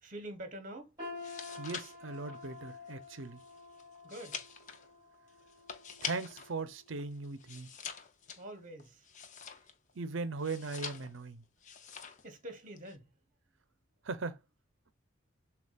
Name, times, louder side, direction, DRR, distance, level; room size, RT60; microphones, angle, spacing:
voice 1, 0.0-1.0 4.0-4.4 8.4-9.1 12.2-13.1, right 1 dB, 40° right, 1.2 m, -46 dB
sound 1, 1.0-6.9 7.3-7.6 8.3-8.4, left 3 dB, 20° right, 2.7 m, -49 dB
sound 2, 1.1-6.5 6.9-9.9 10.4-11.3 11.6-12.3 12.6-13.0, left 6 dB, 35° left, 0.6 m, -45 dB
voice 2, 1.6-3.4 6.0-7.7 10.0-11.4 14.1-14.4, right 3 dB, 65° right, 0.7 m, -39 dB
6.9 x 2.4 x 2.4 m
head